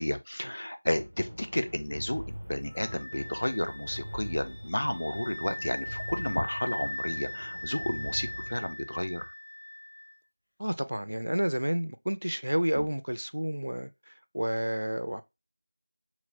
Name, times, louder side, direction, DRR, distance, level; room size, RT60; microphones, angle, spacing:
voice 1, 0.0-9.3 12.8-12.9, left 1 dB, 50° left, 0.4 m, -32 dB
sound 1, 0.9-8.7, equal, 15° right, 0.5 m, -43 dB
Wind instrument woodwind instrument, 2.7-10.1, left 1 dB, 90° left, 0.8 m, -40 dB
voice 2, 10.6-13.9 14.3-15.2, equal, 75° right, 0.3 m, -30 dB
2.8 x 2.0 x 2.6 m
figure-of-eight pair, 175°, 0 cm